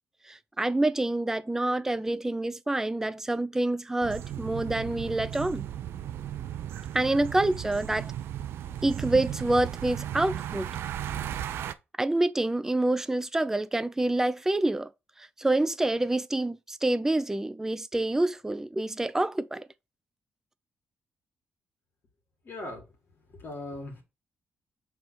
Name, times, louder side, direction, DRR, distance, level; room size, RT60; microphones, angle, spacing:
voice 1, 0.3-5.7 6.9-8.1 8.8-10.7 12.0-14.9 15.2-19.7, right 2 dB, 10° right, 0.5 m, -27 dB
sound 1, 4.0-11.7, right 11 dB, 85° right, 0.5 m, -35 dB
voice 2, 22.5-22.8 23.4-24.0, left 2 dB, 60° left, 2.1 m, -38 dB
5.9 x 3.5 x 4.7 m
cardioid pair, 85°, 4 cm